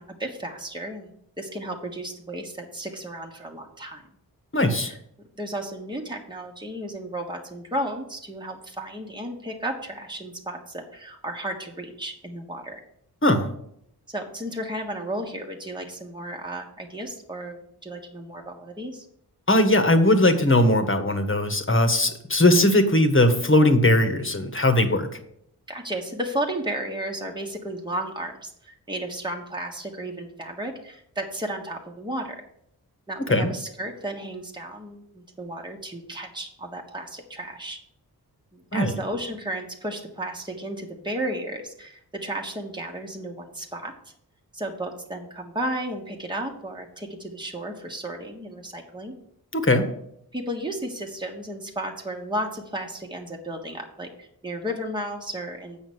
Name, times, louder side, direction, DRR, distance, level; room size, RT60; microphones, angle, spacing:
voice 1, 0.0-4.0 4.7-5.0 5.4-12.8 14.1-19.1 25.7-32.4 33.1-37.8 38.5-43.9 44.5-49.1 50.3-55.8, right 1 dB, 10° right, 1 dB, 1.6 m, -33 dB
voice 2, 4.5-4.9 13.2-13.5 19.5-25.1 33.3-33.5 38.7-38.9 49.5-49.9, left 1 dB, 30° left, 6 dB, 1.6 m, -19 dB
7.9 x 6.2 x 6.3 m, 0.72 s
cardioid pair, 50°, 39 cm